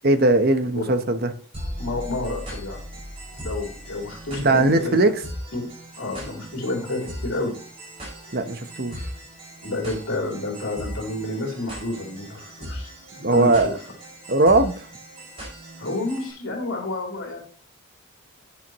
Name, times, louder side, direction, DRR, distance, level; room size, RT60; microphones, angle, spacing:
voice 1, 0.0-1.3 4.4-5.2 8.3-9.0 13.2-13.8 14.3-14.7, right 2 dB, 45° right, 0.9 m, -19 dB
sound 1, 1.5-16.3, equal, 25° right, 5.7 m, -38 dB
voice 2, 1.8-2.8 3.4-5.0 5.5-5.6 6.0-7.5 9.6-13.7 15.8-17.4, left 2 dB, 75° left, 3.2 m, -30 dB
10.5 x 9.4 x 3.0 m
head